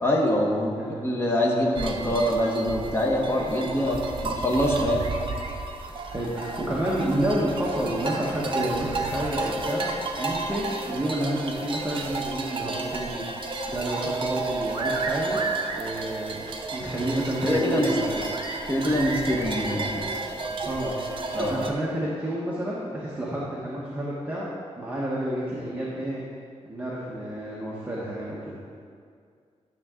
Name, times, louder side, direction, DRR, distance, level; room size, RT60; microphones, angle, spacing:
voice 1, 0.0-5.1 17.4-17.9 18.7-20.1 21.3-21.6, left 1 dB, 20° left, -2 dB, 1.3 m, -24 dB
sound 1, 1.8-21.7, right 3 dB, 45° right, 0.8 m, -32 dB
voice 2, 6.1-9.9 10.2-13.2 13.7-15.4 15.7-18.2 20.6-21.0 21.4-24.5 24.8-26.2 26.7-28.6, right 1 dB, 15° right, -7 dB, 1.2 m, -29 dB
12.0 x 6.7 x 3.7 m, 2.2 s
wide cardioid pair, 170°, 12 cm